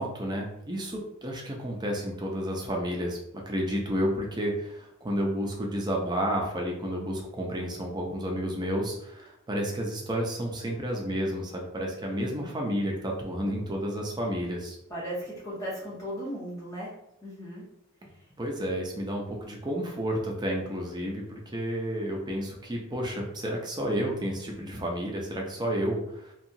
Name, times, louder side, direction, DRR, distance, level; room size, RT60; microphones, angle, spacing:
voice 1, 0.0-14.8 18.4-26.3, equal, 20° right, 0 dB, 0.5 m, -31 dB
voice 2, 12.1-12.6 14.9-16.9 17.2-17.7 18.1-18.2, equal, 15° left, -8 dB, 0.7 m, -37 dB
2.7 x 2.3 x 2.6 m, 0.78 s
head